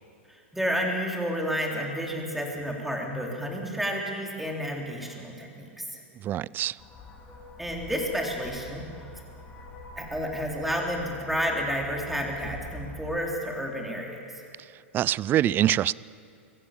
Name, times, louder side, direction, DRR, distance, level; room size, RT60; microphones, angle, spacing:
voice 1, 0.3-6.0 7.6-8.8 10.0-14.4, equal, 5° right, 3.8 m, -31 dB
voice 2, 6.2-6.7 14.9-15.9, right 12 dB, 30° right, 0.4 m, -24 dB
sound 1, 6.8-13.2, left 1 dB, 25° left, 5.7 m, -45 dB
24.0 x 15.0 x 7.5 m
hypercardioid pair, 110°, 7 cm